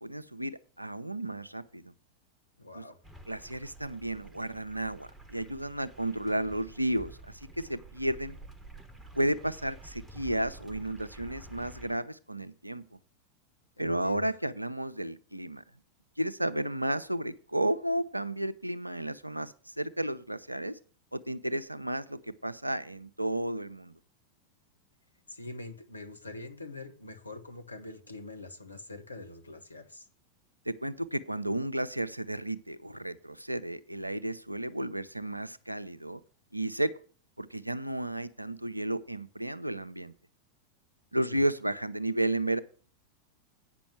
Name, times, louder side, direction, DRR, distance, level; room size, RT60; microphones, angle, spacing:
voice 1, 0.0-1.9 2.7-2.8 3.3-7.2 7.6-8.4 9.1-12.8 13.8-15.6 16.2-20.8 21.1-24.0 30.7-36.2 36.5-36.9 37.4-40.1 41.1-42.6, right 1 dB, 85° right, 0.6 m, -33 dB
voice 2, 2.6-3.0 13.8-14.3 25.3-30.1 41.3-41.4, left 2 dB, 80° left, 1.1 m, -44 dB
sound 1, 3.0-12.0, right 2 dB, 5° right, 1.3 m, -50 dB
8.9 x 6.1 x 7.6 m
figure-of-eight pair, 90°, 0 cm